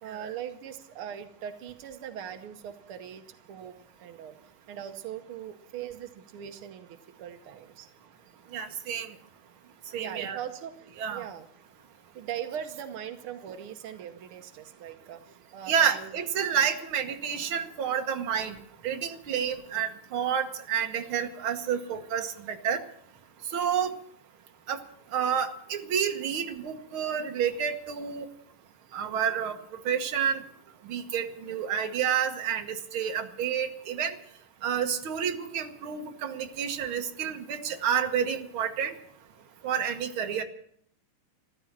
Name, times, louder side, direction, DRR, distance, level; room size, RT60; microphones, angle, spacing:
voice 1, 0.0-4.4 4.7-7.9 10.0-11.5 12.1-16.2 16.5-16.7, right 9 dB, 85° right, 7 dB, 1.2 m, -40 dB
voice 2, 8.5-9.1 9.9-10.4 11.0-11.2 15.7-18.6 18.8-22.8 23.5-23.9 24.7-24.8 25.1-28.3 28.9-29.6 29.8-30.4 30.9-34.2 34.6-38.9 39.6-40.4, right 8 dB, 55° right, 6 dB, 1.5 m, -29 dB
14.5 x 13.5 x 7.4 m, 0.66 s
omnidirectional pair, 3.9 m